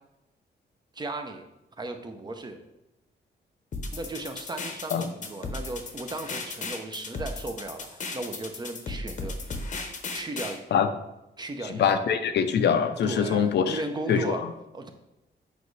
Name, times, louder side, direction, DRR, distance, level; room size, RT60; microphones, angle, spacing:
voice 1, 0.9-1.5 1.8-2.6 3.9-9.4 10.1-10.6 11.4-12.0 13.0-14.4 14.7-14.9, right 2 dB, 25° right, 5 dB, 0.6 m, -36 dB
sound 1, 3.7-10.6, left 3 dB, 45° left, 0.8 m, -36 dB
voice 2, 11.7-13.8 14.1-14.5, left 7 dB, 75° left, 8 dB, 0.6 m, -24 dB
8.3 x 5.1 x 3.2 m, 0.90 s
wide cardioid pair, 165°, 18 cm